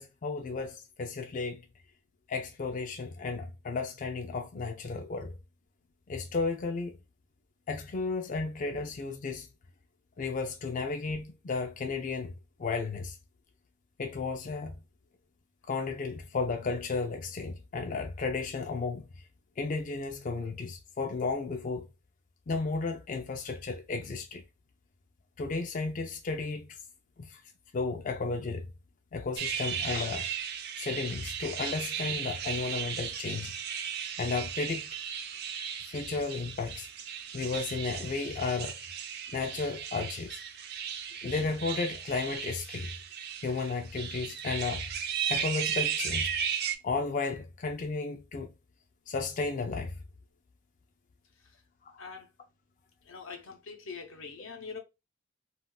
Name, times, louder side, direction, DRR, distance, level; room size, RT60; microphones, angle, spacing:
voice 1, 0.0-1.6 2.3-5.4 6.1-7.0 7.7-9.5 10.2-12.3 12.6-13.2 14.0-14.8 15.6-19.1 19.6-21.9 22.5-24.4 25.4-26.8 27.2-27.4 27.7-28.7 29.1-30.3 30.8-33.5 34.2-35.0 35.9-36.9 37.3-38.7 39.3-40.4 41.2-42.9 43.4-44.8 45.3-46.3 46.8-48.5 49.1-49.9 51.9-52.0, left 4 dB, 40° left, 0.4 m, -33 dB
sound 1, 29.4-46.8, right 8 dB, 55° right, 0.4 m, -36 dB
voice 2, 53.1-54.8, left 5 dB, 85° left, 0.7 m, -43 dB
2.4 x 2.3 x 3.6 m
head